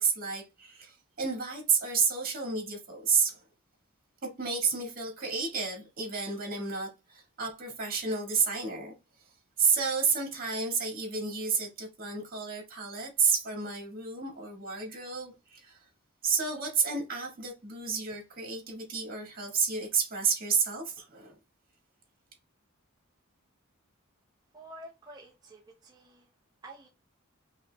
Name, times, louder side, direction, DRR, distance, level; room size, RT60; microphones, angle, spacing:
voice 1, 0.0-3.4 4.4-8.9 9.6-15.8 16.2-21.3, right 5 dB, 45° right, 1.8 m, -30 dB
voice 2, 24.5-26.3 26.6-26.9, right 1 dB, 20° right, 0.6 m, -49 dB
5.4 x 3.0 x 2.3 m
head